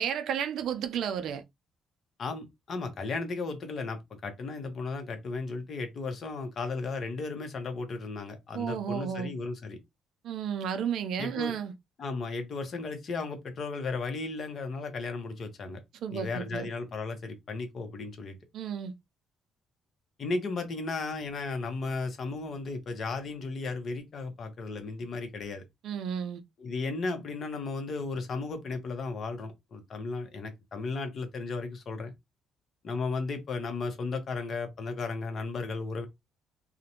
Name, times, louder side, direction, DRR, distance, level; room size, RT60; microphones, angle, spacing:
voice 1, 0.0-1.4 8.5-9.3 10.2-11.7 16.0-16.7 18.5-18.9 25.8-26.4, right 8 dB, 70° right, 0.4 m, -32 dB
voice 2, 2.2-9.8 11.2-11.5 12.0-15.8 16.1-18.4 20.2-25.6 26.6-32.1 32.8-36.1, left 3 dB, 55° left, 0.8 m, -35 dB
2.4 x 2.1 x 2.8 m
supercardioid pair, 70°, 0 cm